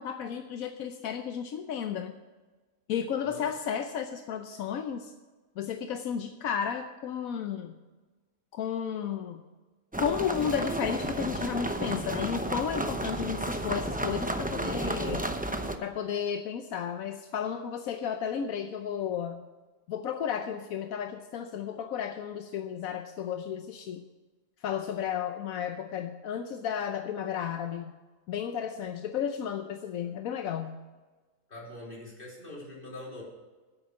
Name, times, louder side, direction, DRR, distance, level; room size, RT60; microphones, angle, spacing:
voice 1, 0.0-2.2 2.9-5.1 5.6-7.7 8.5-9.4 10.0-15.3 15.8-19.4 19.9-24.0 24.6-27.9 28.3-30.8, left 8 dB, 80° left, 7 dB, 1.1 m, -33 dB
sound 1, 9.9-15.8, right 1 dB, 10° right, 0.4 m, -32 dB
voice 2, 31.5-33.2, left 1 dB, 40° left, -4 dB, 3.7 m, -43 dB
10.0 x 8.8 x 6.8 m, 1.3 s
omnidirectional pair, 1.4 m